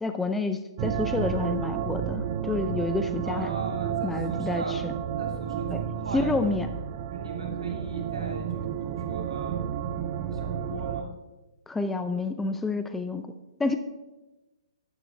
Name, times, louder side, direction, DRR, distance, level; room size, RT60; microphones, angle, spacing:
voice 1, 0.0-3.5 4.0-4.9 5.7-5.8 6.1-6.7 11.7-13.3 13.6-13.8, left 3 dB, 5° left, 8 dB, 0.6 m, -29 dB
sound 1, 0.8-11.0, right 9 dB, 40° right, 0.7 m, -31 dB
voice 2, 3.2-4.9 5.2-6.6 7.1-9.6 10.3-11.1, right 2 dB, 90° right, 1 dB, 2.8 m, -39 dB
12.0 x 10.0 x 3.3 m, 1.1 s
hypercardioid pair, 140°, 3 cm